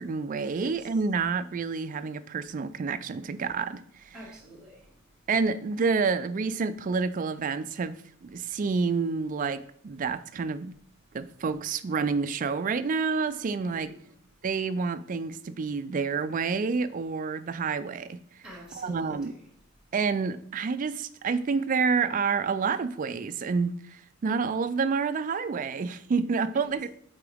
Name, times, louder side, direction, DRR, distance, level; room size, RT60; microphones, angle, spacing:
voice 1, 0.0-4.1 5.3-10.7 11.1-13.9 14.4-18.2 18.7-19.3 19.9-26.9, right 5 dB, 40° right, 0.3 m, -28 dB
voice 2, 0.5-0.9 4.1-5.2 13.6-14.1 18.4-19.5 19.8-19.9 26.6-26.9, right 1 dB, 5° right, 1.6 m, -47 dB
8.3 x 3.8 x 3.4 m
head